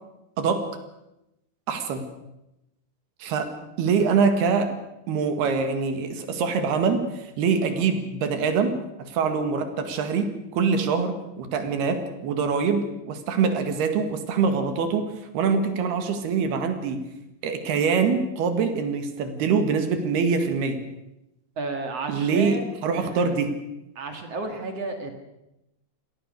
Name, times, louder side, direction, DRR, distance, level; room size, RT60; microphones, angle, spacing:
voice 1, 1.7-2.1 3.2-3.5 3.8-4.7 5.1-17.0 17.4-20.8 22.1-23.6, right 5 dB, 75° right, 7 dB, 3.9 m, -24 dB
voice 2, 21.6-22.7 22.9-23.3 24.0-25.1, right 3 dB, 45° right, 5 dB, 2.6 m, -32 dB
27.0 x 18.5 x 6.6 m, 0.90 s
omnidirectional pair, 4.6 m